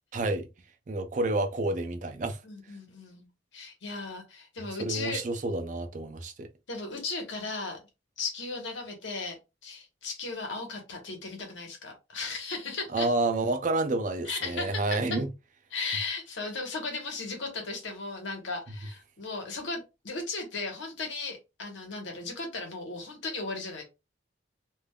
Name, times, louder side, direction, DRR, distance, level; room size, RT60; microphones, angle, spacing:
voice 1, 0.1-0.5 0.9-2.4 4.8-6.5 12.9-15.3, right 2 dB, 45° right, 0.4 m, -29 dB
voice 2, 2.4-3.3 3.5-5.2 6.7-7.8 8.2-9.4 9.6-13.1 14.2-15.2 15.7-23.8, left 3 dB, 90° left, 1.1 m, -36 dB
3.4 x 2.5 x 2.2 m
head